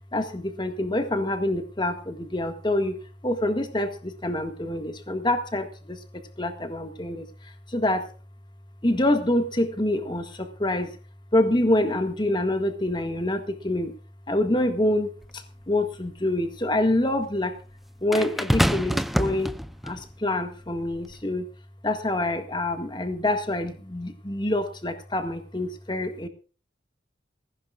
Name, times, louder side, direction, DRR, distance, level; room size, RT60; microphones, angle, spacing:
voice 1, 0.1-6.0 6.4-8.1 8.8-11.0 11.3-13.9 14.3-17.6 18.0-19.5 19.8-21.5 21.8-26.3, left 1 dB, 25° left, 7 dB, 1.7 m, -26 dB
sound 1, 15.2-15.3 18.1-20.0 20.9-21.1, equal, ahead, 0.6 m, -25 dB
21.0 x 16.0 x 2.4 m, 0.35 s
head